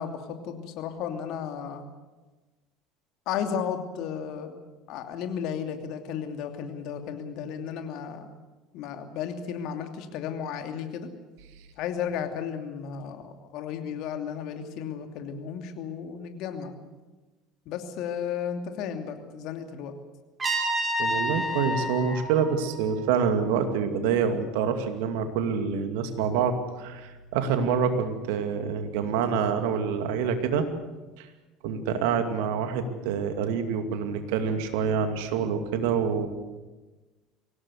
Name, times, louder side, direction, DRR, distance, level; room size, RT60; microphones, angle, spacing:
voice 1, 0.0-1.9 3.3-4.6 4.9-8.3 8.7-11.1 11.8-16.7 17.7-19.9, left 8 dB, 60° left, 6 dB, 2.8 m, -34 dB
Trumpet, 20.4-23.3, equal, 25° right, 5.4 m, -30 dB
voice 2, 21.0-30.7 31.2-31.3 31.6-36.3, right 6 dB, 70° right, 7 dB, 2.4 m, -26 dB
24.0 x 17.5 x 8.2 m, 1.2 s
hypercardioid pair, 70°, 0 cm